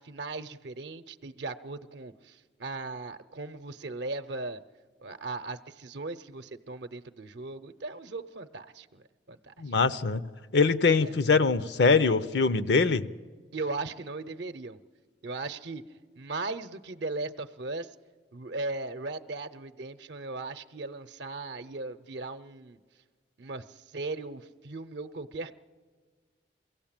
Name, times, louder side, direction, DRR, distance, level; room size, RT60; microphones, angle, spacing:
voice 1, 0.0-4.6 5.0-9.8 11.0-11.2 13.5-14.8 15.2-15.8 16.2-17.9 18.3-22.8 23.4-25.5, right 3 dB, 70° right, 10 dB, 0.7 m, -38 dB
voice 2, 9.6-10.2 10.5-13.1, left 4 dB, 70° left, 14 dB, 0.7 m, -23 dB
23.0 x 16.0 x 8.8 m, 1.5 s
head